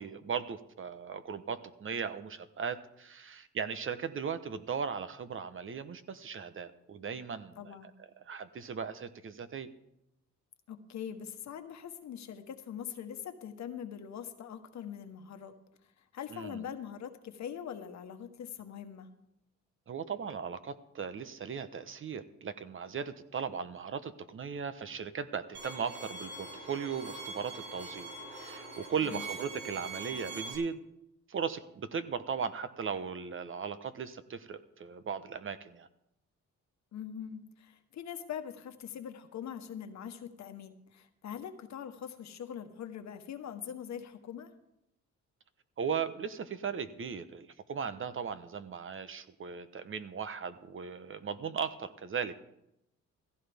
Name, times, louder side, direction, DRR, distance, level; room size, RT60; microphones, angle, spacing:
voice 1, 0.0-7.9 8.2-9.7 16.3-16.6 19.9-30.8 31.3-35.9 45.8-52.4, right 6 dB, 45° right, 11 dB, 1.0 m, -37 dB
voice 2, 7.6-7.9 10.7-15.6 15.8-19.1 29.0-29.2 36.9-44.5, left 8 dB, 65° left, 7 dB, 1.3 m, -43 dB
Bowed string instrument, 25.5-30.5, right 3 dB, 75° right, 5.5 m, -43 dB
15.5 x 15.0 x 3.5 m, 0.82 s
cardioid pair, 90°, 30 cm